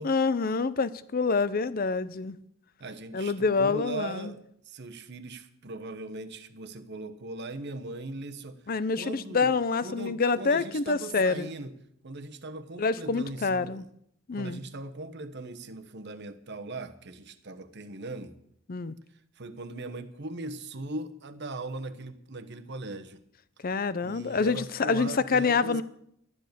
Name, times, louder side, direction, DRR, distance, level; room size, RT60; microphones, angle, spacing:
voice 1, 0.0-2.4 3.1-4.3 8.7-11.5 12.8-13.8 14.3-14.6 18.7-18.9 23.6-25.8, left 4 dB, 40° left, 0.6 m, -27 dB
voice 2, 2.8-4.4 4.6-8.6 9.0-9.5 9.8-11.7 12.0-13.8 14.3-18.3 19.4-23.2 24.0-25.8, right 2 dB, 50° right, 1.1 m, -39 dB
12.5 x 10.5 x 6.8 m
head